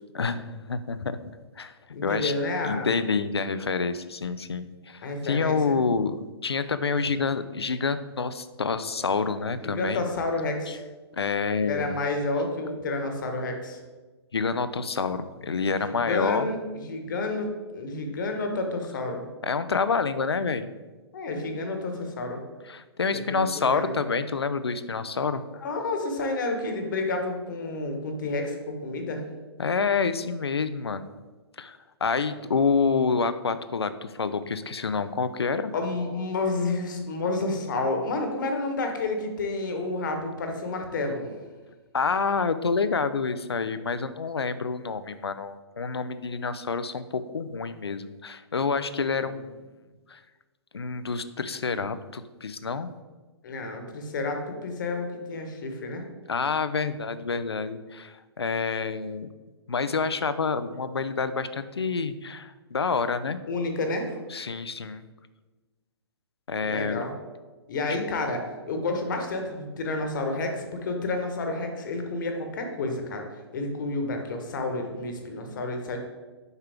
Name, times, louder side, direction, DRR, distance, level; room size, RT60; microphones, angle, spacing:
voice 1, 0.1-1.2 1.6-1.7 2.0-2.3 2.6-6.2 6.4-10.0 10.7-10.8 11.1-11.9 14.3-16.5 19.4-20.7 22.7-25.4 29.6-31.0 31.6-35.7 41.9-49.5 50.1-50.2 50.7-52.9 56.3-59.3 59.7-63.4 64.3-65.1 66.5-67.0, left 5 dB, 70° left, 12 dB, 0.5 m, -28 dB
voice 2, 1.9-2.9 5.0-5.8 9.6-10.8 11.6-13.8 15.9-16.6 16.9-19.3 21.1-22.4 23.1-24.1 25.6-29.2 35.7-41.3 53.4-56.0 63.5-64.2 66.6-67.1 67.7-73.3 73.5-76.0, left 2 dB, 50° left, 4 dB, 1.2 m, -30 dB
8.1 x 5.5 x 3.5 m, 1.3 s
figure-of-eight pair, 120°, 14 cm